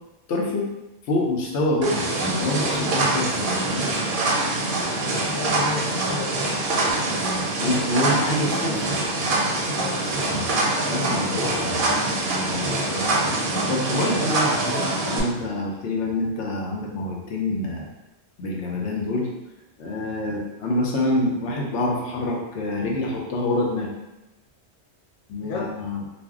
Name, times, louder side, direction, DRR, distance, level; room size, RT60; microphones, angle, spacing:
voice 1, 0.3-0.7 1.1-3.8 7.6-8.9 10.1-10.5 10.9-11.9 12.4-13.3 13.7-17.9 18.4-19.3 19.8-23.9 25.3-26.0, left 1 dB, 80° left, -2 dB, 0.9 m, -26 dB
sound 1, 1.8-15.2, right 2 dB, 60° right, 0.6 m, -24 dB
voice 2, 4.7-6.6 9.7-10.0 25.4-25.7, left 4 dB, 50° left, -2 dB, 0.5 m, -33 dB
2.5 x 2.1 x 3.5 m, 0.99 s
omnidirectional pair, 1.2 m